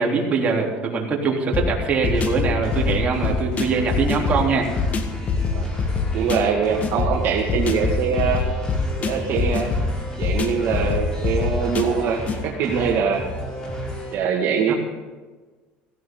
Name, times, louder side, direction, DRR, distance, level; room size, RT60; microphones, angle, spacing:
voice 1, 0.0-4.7 14.7-14.8, right 4 dB, 35° right, -2 dB, 3.5 m, -22 dB
sound 1, 1.5-12.4, left 4 dB, 35° left, 1.6 m, -25 dB
sound 2, 2.1-14.1, equal, 20° left, 5.1 m, -33 dB
voice 2, 6.1-8.4 9.0-9.7 10.2-13.2 14.1-14.7, right 6 dB, 60° right, -1 dB, 2.0 m, -23 dB
16.5 x 15.5 x 3.9 m, 1.3 s
cardioid pair, 120°, 4 cm